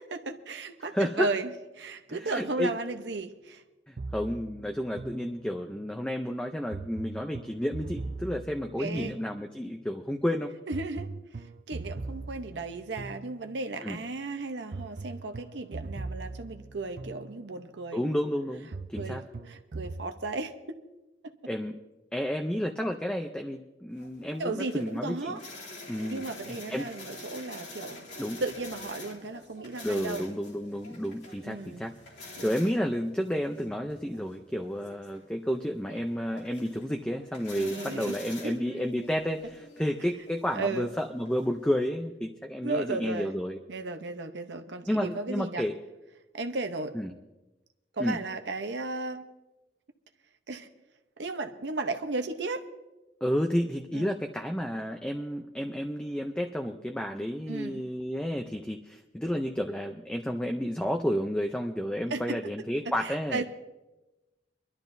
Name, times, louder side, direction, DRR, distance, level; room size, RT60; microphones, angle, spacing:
voice 1, 0.0-1.5 1.8-3.6 8.8-9.1 10.7-11.1 11.3-18.1 19.0-20.8 21.2-21.3 24.4-25.4 26.1-28.1 28.4-30.3 31.4-31.9 32.4-32.6 37.5-38.6 40.5-40.9 42.6-43.3 43.7-45.6 46.3-47.0 47.9-49.2 50.5-50.7 51.2-52.6 53.9-54.1 57.5-57.8 62.1-62.4 62.8-63.4, right 3 dB, 85° right, 6 dB, 0.8 m, -35 dB
voice 2, 0.9-1.3 2.1-2.7 3.9-10.5 13.8-14.0 17.9-19.2 21.5-21.8 22.1-25.4 25.9-26.2 26.5-26.9 28.2-28.4 29.8-32.0 32.4-43.6 44.9-45.8 46.9-47.1 48.0-48.2 53.2-63.4, equal, 5° left, 3 dB, 0.5 m, -31 dB
sound 1, 4.0-5.8 6.7-9.8 10.7-13.8 14.7-17.8 18.7-20.1, right 3 dB, 50° right, 0.5 m, -41 dB
sound 2, 24.0-41.8, left 1 dB, 85° left, 2.9 m, -47 dB
24.0 x 12.0 x 2.6 m, 1.0 s
head